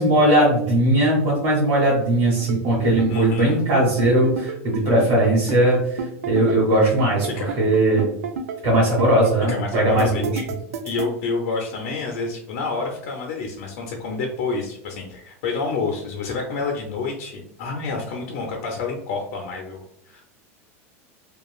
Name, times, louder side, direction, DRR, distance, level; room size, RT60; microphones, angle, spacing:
voice 1, 0.0-7.3 7.6-8.0 8.6-10.3, right 1 dB, 55° right, -6 dB, 1.1 m, -19 dB
sound 1, 2.4-11.1, right 6 dB, 90° right, 0.4 m, -29 dB
voice 2, 3.1-3.6 7.3-7.5 9.5-10.2 10.8-20.2, left 4 dB, 65° left, 1 dB, 0.5 m, -28 dB
2.9 x 2.3 x 2.3 m, 0.75 s
hypercardioid pair, 110°, 8 cm